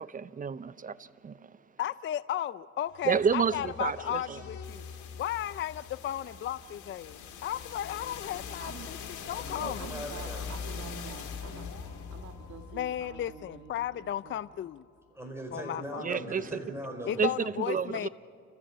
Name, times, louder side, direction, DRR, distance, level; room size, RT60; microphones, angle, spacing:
voice 1, 0.0-1.4 3.0-4.4 16.0-16.4 17.2-17.3 17.6-18.1, right 6 dB, 25° right, 17 dB, 0.6 m, -30 dB
voice 2, 1.8-4.8 5.1-9.8 12.7-14.8 15.5-16.1 17.1-18.1, left 11 dB, 40° left, 16 dB, 0.4 m, -35 dB
sound 1, 2.9-14.7, left 6 dB, 75° left, 2.5 m, -43 dB
voice 3, 8.6-8.9 9.5-14.4, right 6 dB, 70° right, 4 dB, 1.8 m, -48 dB
voice 4, 9.3-10.5 15.1-17.2, right 1 dB, 10° right, 2 dB, 5.0 m, -40 dB
28.5 x 15.0 x 7.5 m, 2.4 s
cardioid pair, 90°, 30 cm